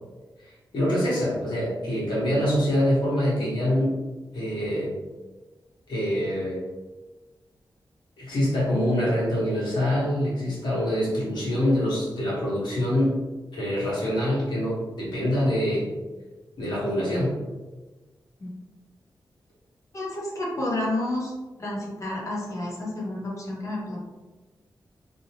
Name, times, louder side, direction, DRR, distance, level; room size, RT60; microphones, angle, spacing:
voice 1, 0.4-4.0 4.3-4.9 5.9-6.6 8.2-13.2 13.5-15.9 16.6-17.4, equal, 75° left, -7 dB, 1.2 m, -25 dB
voice 2, 19.9-21.3 21.6-24.0, left 1 dB, 40° left, -4 dB, 0.8 m, -30 dB
2.7 x 2.1 x 2.8 m, 1.2 s
wide cardioid pair, 140°, 8 cm